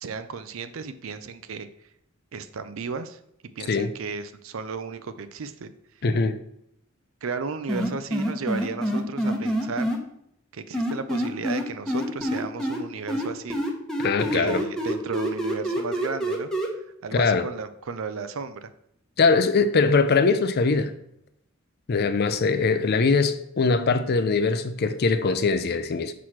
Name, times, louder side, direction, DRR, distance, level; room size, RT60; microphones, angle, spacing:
voice 1, 0.0-1.7 2.3-3.2 3.6-5.7 7.2-9.9 10.5-13.6 14.3-16.5 17.0-18.7, right 4 dB, 70° right, 0.5 m, -34 dB
voice 2, 6.0-6.4 14.0-14.6 17.1-17.5 19.2-20.9 21.9-26.1, left 4 dB, 50° left, 0.5 m, -22 dB
sound 1, 7.7-10.0 10.7-12.8 13.1-16.7, equal, 5° left, 0.9 m, -26 dB
6.0 x 3.1 x 5.7 m
head